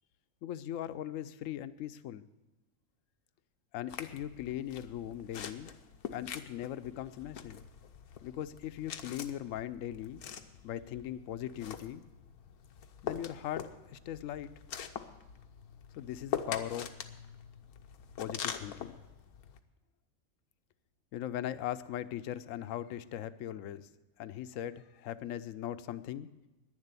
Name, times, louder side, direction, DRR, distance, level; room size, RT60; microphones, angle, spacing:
voice 1, 0.4-2.3 3.7-5.7 6.1-7.6 8.2-10.2 10.6-12.0 13.0-14.5 16.0-17.0 18.2-19.0 21.1-23.9 24.2-26.3, left 11 dB, 70° left, 13 dB, 1.0 m, -39 dB
sound 1, 3.9-19.6, left 8 dB, 85° left, 1.3 m, -44 dB
11.0 x 9.9 x 8.2 m, 1.1 s
omnidirectional pair, 1.5 m